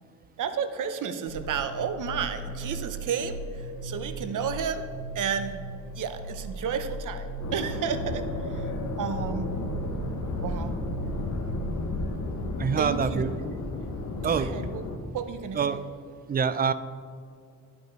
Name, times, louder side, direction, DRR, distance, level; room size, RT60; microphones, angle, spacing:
voice 1, 0.4-4.8 5.1-8.7 9.0-9.6 10.4-10.8 12.8-13.2 14.2-14.8 15.1-15.6, right 7 dB, 60° right, 9 dB, 0.8 m, -32 dB
sound 1, 1.3-12.0, right 1 dB, 25° left, 2.5 m, -37 dB
sound 2, 7.4-15.0, left 2 dB, 50° left, 1.1 m, -33 dB
voice 2, 12.6-13.3 14.2-14.5 15.6-15.8 16.3-16.7, right 6 dB, 25° right, 13 dB, 0.4 m, -25 dB
11.5 x 5.2 x 4.6 m, 2.2 s
cardioid pair, 95°, 35 cm